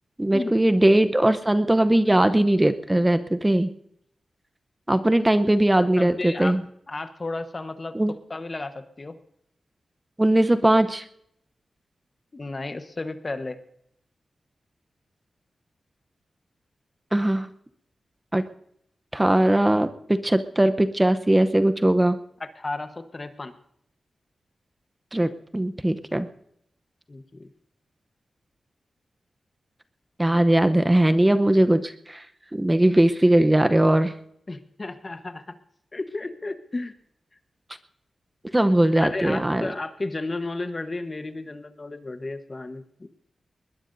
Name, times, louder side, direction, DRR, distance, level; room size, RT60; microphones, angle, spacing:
voice 1, 0.2-3.7 4.9-6.6 7.9-8.1 10.2-11.0 17.1-17.5 18.3-18.4 19.1-22.2 25.1-26.3 30.2-32.2 32.5-34.1 38.5-39.6, right 1 dB, 15° right, 9 dB, 0.7 m, -20 dB
voice 2, 6.0-6.6 6.9-9.2 12.3-13.6 22.4-23.5 27.1-27.5 34.5-35.6 35.9-36.9 39.0-43.1, left 2 dB, 35° left, 9 dB, 1.1 m, -33 dB
20.5 x 20.5 x 2.6 m, 0.72 s
cardioid pair, 70°, 0 cm